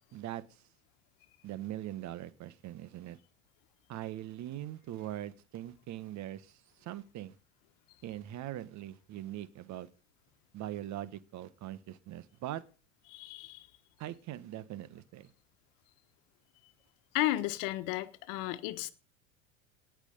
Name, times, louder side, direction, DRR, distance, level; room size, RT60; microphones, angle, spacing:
voice 1, 0.1-0.6 1.4-3.2 3.9-7.3 8.0-9.9 10.5-12.6 14.0-15.3, right 13 dB, 45° right, 1.4 m, -41 dB
voice 2, 13.1-13.7 17.1-18.9, left 16 dB, 55° left, 1.4 m, -33 dB
18.5 x 6.4 x 5.3 m
hypercardioid pair, 80°, 39 cm